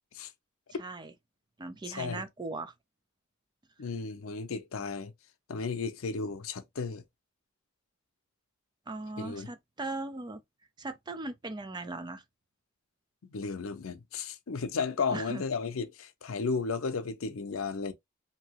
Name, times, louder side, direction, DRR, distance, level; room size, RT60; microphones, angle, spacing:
voice 1, 0.8-1.1 1.6-2.7 8.9-10.4 10.8-12.2 15.1-15.4, right 2 dB, 20° right, 0.4 m, -38 dB
voice 2, 1.9-2.2 3.8-5.1 5.5-7.0 9.2-9.5 13.2-17.9, left 4 dB, 80° left, 0.6 m, -34 dB
2.9 x 2.7 x 2.8 m
head